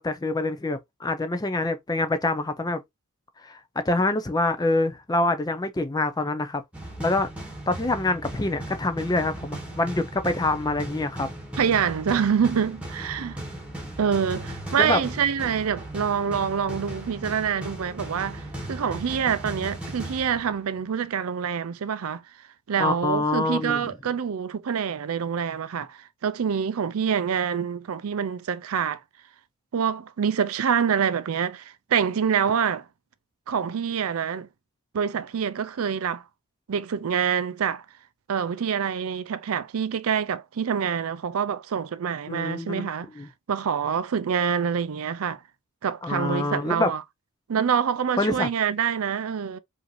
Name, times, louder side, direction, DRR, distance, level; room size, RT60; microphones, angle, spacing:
voice 1, 0.0-2.8 3.4-6.6 7.0-7.3 7.7-11.3 14.8-15.0 22.8-23.8 42.3-42.9 43.2-43.3 46.0-46.9 48.2-48.5, left 2 dB, 20° left, 0.5 m, -25 dB
sound 1, 6.7-20.9, right 1 dB, 5° right, 1.4 m, -37 dB
voice 2, 11.6-13.4 14.0-29.0 29.7-32.9 33.5-34.5 34.9-36.2 36.7-37.8 38.3-45.4 45.8-47.0 47.5-49.6, right 7 dB, 80° right, 0.4 m, -26 dB
4.9 x 2.7 x 3.1 m
head